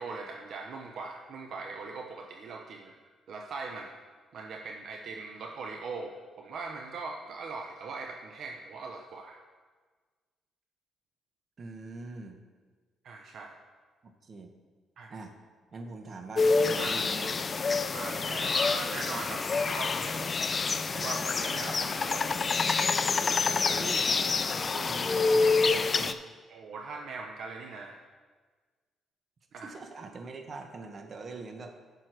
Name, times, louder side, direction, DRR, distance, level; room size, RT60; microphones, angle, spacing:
voice 1, 0.0-2.9 3.3-3.9 4.3-9.4 13.0-13.6 15.0-15.1 16.8-17.0 17.9-20.3 20.9-22.3 23.1-23.8 26.5-28.0 29.5-29.7, right 4 dB, 65° right, 3 dB, 0.8 m, -40 dB
voice 2, 11.6-12.4 14.0-14.5 15.1-15.3 15.7-17.4 23.6-24.1 24.5-26.2 29.6-31.8, right 3 dB, 45° right, 5 dB, 1.2 m, -43 dB
sound 1, 16.4-26.1, left 4 dB, 40° left, 0.4 m, -27 dB
11.0 x 6.1 x 4.6 m, 1.4 s
cardioid pair, 85°, 0 cm